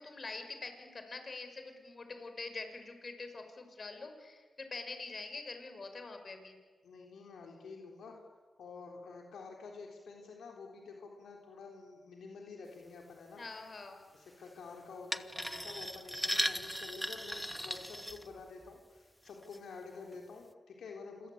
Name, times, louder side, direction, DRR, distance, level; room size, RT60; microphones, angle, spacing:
voice 1, 0.0-6.6 13.4-14.0, left 3 dB, 50° left, 6 dB, 5.8 m, -45 dB
voice 2, 6.8-8.2 8.6-13.4 14.1-21.3, left 4 dB, 80° left, 1 dB, 3.9 m, -49 dB
sound 1, 15.1-18.7 19.3-19.6 20.1-20.2, equal, ahead, 1.4 m, -37 dB
27.0 x 21.5 x 8.8 m, 1.5 s
cardioid pair, 55°, 0 cm